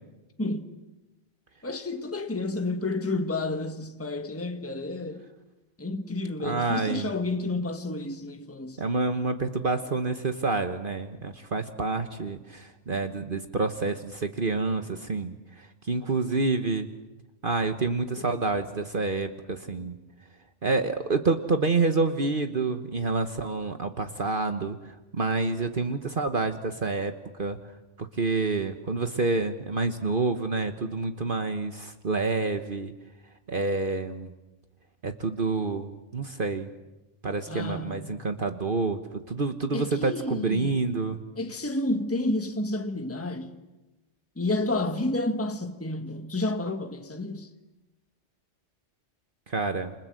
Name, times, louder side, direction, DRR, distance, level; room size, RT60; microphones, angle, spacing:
voice 1, 0.4-0.8 1.6-5.2 5.8-8.8 18.2-18.3 19.7-19.8 37.5-38.2 39.7-40.8 41.4-43.6 44.4-47.5, left 2 dB, 10° left, 1.4 m, -30 dB
voice 2, 6.4-7.1 8.8-15.4 15.9-16.9 17.4-19.9 20.6-24.8 25.2-27.1 27.4-27.6 28.0-32.9 33.5-34.3 35.0-36.7 37.2-39.0 39.3-41.2 49.5-49.9, right 3 dB, 50° right, 1.4 m, -28 dB
29.0 x 26.5 x 7.7 m
omnidirectional pair, 1.2 m